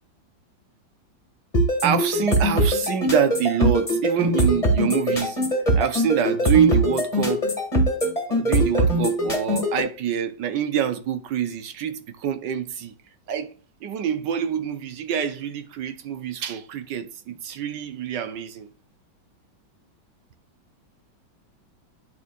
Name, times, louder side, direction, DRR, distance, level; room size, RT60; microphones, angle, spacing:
sound 1, 1.5-9.8, equal, 20° left, 1.8 m, -21 dB
voice 1, 1.8-5.4 5.8-7.5 8.3-12.9 13.3-13.5 13.8-18.7, right 9 dB, 70° right, 1.4 m, -25 dB
11.0 x 4.6 x 2.4 m
omnidirectional pair, 2.1 m